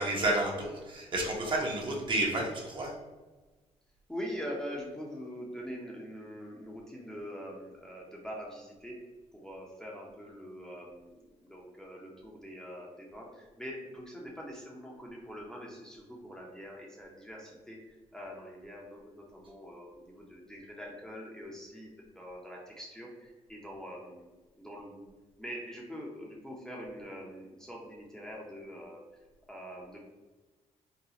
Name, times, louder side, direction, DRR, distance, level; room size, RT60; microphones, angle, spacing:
voice 1, 0.0-2.9, right 1 dB, 40° right, -2 dB, 0.9 m, -30 dB
voice 2, 4.1-9.0 9.3-21.9 22.1-24.3 24.5-25.0 25.4-29.0 29.5-30.0, equal, 5° left, -3 dB, 0.7 m, -43 dB
4.0 x 2.3 x 2.8 m, 1.2 s
cardioid pair, 95°, 13 cm